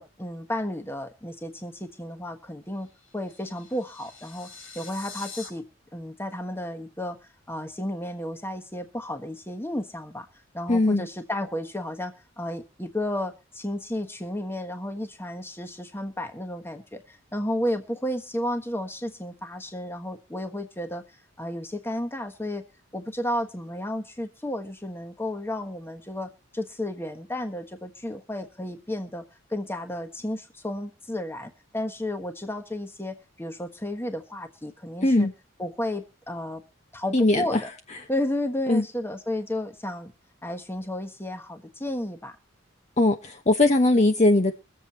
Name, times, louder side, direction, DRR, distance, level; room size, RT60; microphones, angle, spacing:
voice 1, 0.0-2.9 3.1-4.5 4.7-5.7 5.9-7.2 7.5-10.3 10.5-21.0 21.4-22.6 22.9-29.2 29.5-35.3 35.6-36.6 36.9-37.7 38.1-40.1 40.4-42.3, left 1 dB, 10° left, 1.4 m, -32 dB
sound 1, 2.8-5.5, left 5 dB, 85° left, 5.3 m, -44 dB
voice 2, 10.7-11.1 35.0-35.3 37.1-37.6 38.7-38.8 43.0-44.5, left 2 dB, 35° left, 1.0 m, -20 dB
23.0 x 7.8 x 4.2 m
head